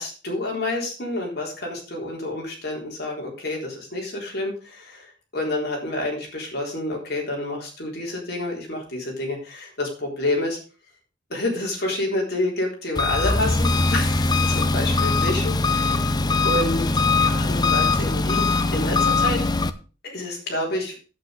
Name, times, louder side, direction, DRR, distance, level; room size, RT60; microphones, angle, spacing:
voice 1, 0.0-10.6 11.3-16.1 16.4-19.4 20.0-20.9, left 1 dB, 55° left, -1 dB, 3.8 m, -29 dB
Engine, 12.9-19.7, left 3 dB, 20° left, 0.5 m, -21 dB
8.8 x 8.2 x 5.0 m, 0.35 s
head